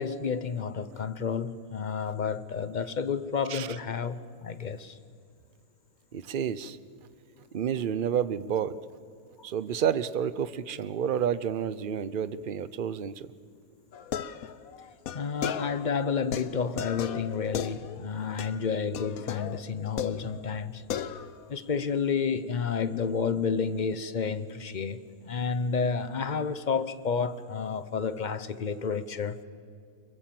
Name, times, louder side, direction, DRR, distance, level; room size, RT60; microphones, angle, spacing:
voice 1, 0.0-5.0 15.1-20.8 21.5-29.4, left 5 dB, 40° left, 0.8 m, -30 dB
voice 2, 6.1-6.8 7.5-8.8 9.4-13.3, right 8 dB, 45° right, 0.7 m, -30 dB
sound 1, 13.9-15.9 16.3-18.1 18.4-18.7 18.9-20.6 20.9-21.5, left 9 dB, 65° left, 1.2 m, -36 dB
24.5 x 23.0 x 7.7 m
omnidirectional pair, 1.7 m